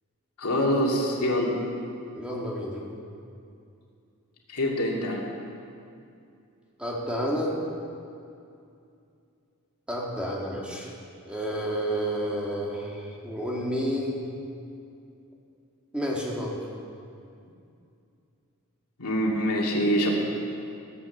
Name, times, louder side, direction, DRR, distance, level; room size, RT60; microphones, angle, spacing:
voice 1, 0.4-1.5 4.5-5.2 19.0-20.1, equal, 85° left, -2 dB, 2.4 m, -25 dB
voice 2, 2.1-2.8 6.8-7.6 9.9-10.9 11.3-14.2 15.9-16.6, equal, 5° right, -3 dB, 2.0 m, -30 dB
16.0 x 8.2 x 7.2 m, 2.5 s
head